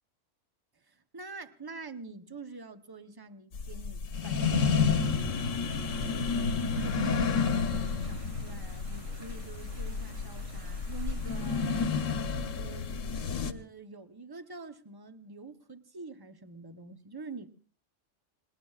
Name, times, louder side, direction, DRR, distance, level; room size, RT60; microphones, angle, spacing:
voice 1, 0.9-12.0 12.3-13.0 13.4-17.5, right 3 dB, 20° right, 0.8 m, -46 dB
sound 1, 3.5-13.5, left 5 dB, 80° left, 1.3 m, -30 dB
sound 2, 4.4-11.9, right 2 dB, 85° right, 3.1 m, -46 dB
29.0 x 20.5 x 2.4 m
omnidirectional pair, 1.3 m